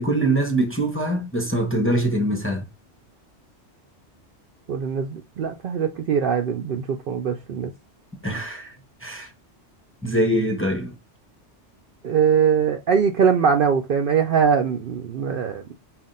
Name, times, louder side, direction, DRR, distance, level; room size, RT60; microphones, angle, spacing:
voice 1, 0.0-2.7 8.2-8.7 9.0-9.3 10.0-10.9, right 1 dB, 15° left, 0.7 m, -23 dB
voice 2, 4.7-7.7 12.0-15.6, right 6 dB, 60° right, 0.6 m, -21 dB
5.7 x 2.4 x 2.6 m
omnidirectional pair, 1.2 m